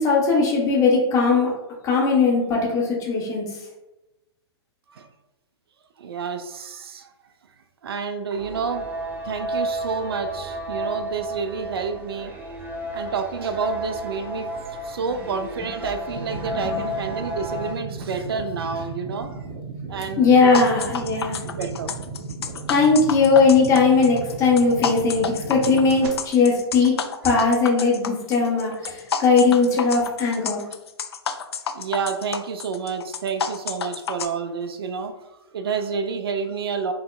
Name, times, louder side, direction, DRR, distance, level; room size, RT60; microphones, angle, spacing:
voice 1, 0.0-1.5 1.8-3.6 16.5-16.8 20.2-21.4 22.7-26.9 27.2-30.6, left 4 dB, 25° left, -3 dB, 1.2 m, -19 dB
voice 2, 6.0-7.1 7.8-8.9 9.2-12.3 12.9-14.5 14.8-19.3 19.9-20.7 21.4-21.9 26.9-27.0 27.2-27.3 28.8-28.9 31.7-35.1 35.5-36.9, right 5 dB, 60° right, 8 dB, 0.4 m, -29 dB
sound 1, 8.4-17.7, right 1 dB, 10° right, 0.6 m, -32 dB
sound 2, 16.1-26.1, right 4 dB, 40° right, 0.9 m, -35 dB
sound 3, 20.5-34.3, left 6 dB, 70° left, 0.4 m, -30 dB
5.3 x 2.8 x 2.3 m, 0.98 s
figure-of-eight pair, 115°, 14 cm